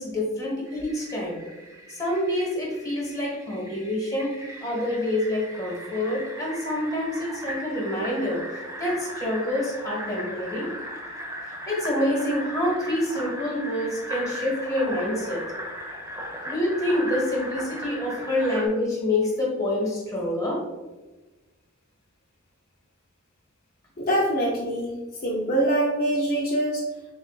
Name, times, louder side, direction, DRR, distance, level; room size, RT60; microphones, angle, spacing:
voice 1, 0.0-1.4 1.9-4.3 4.6-10.7 11.7-15.4 16.5-20.6, left 1 dB, 15° left, -3 dB, 1.3 m, -27 dB
Fill (with liquid), 0.6-18.7, equal, 15° right, 1.0 m, -37 dB
voice 2, 24.0-24.9 25.2-26.9, right 1 dB, 45° left, -3 dB, 0.5 m, -24 dB
7.4 x 2.5 x 2.4 m, 1.2 s
head